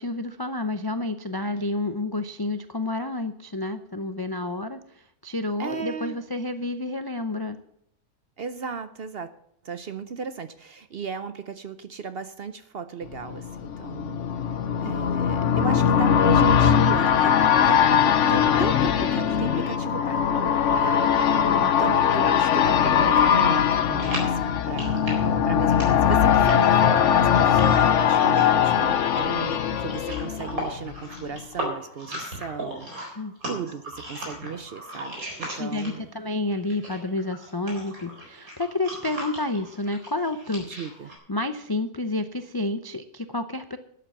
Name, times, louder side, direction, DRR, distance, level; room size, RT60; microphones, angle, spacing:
voice 1, 0.0-4.8 5.2-7.6 14.8-14.9 21.3-21.7 33.2-33.3 35.6-40.6 41.3-43.8, left 2 dB, 35° left, 9 dB, 0.3 m, -30 dB
voice 2, 5.6-6.2 8.4-9.3 9.6-14.2 14.8-17.4 17.7-24.4 24.7-36.1 40.6-41.1, right 6 dB, 55° right, 12 dB, 0.7 m, -36 dB
sound 1, 13.2-31.0 31.3-31.4, left 8 dB, 60° left, 1.0 m, -21 dB
sound 2, 24.0-36.2 36.5-41.2, right 1 dB, 70° right, 4.6 m, -37 dB
12.0 x 8.5 x 7.1 m, 0.71 s
omnidirectional pair, 1.6 m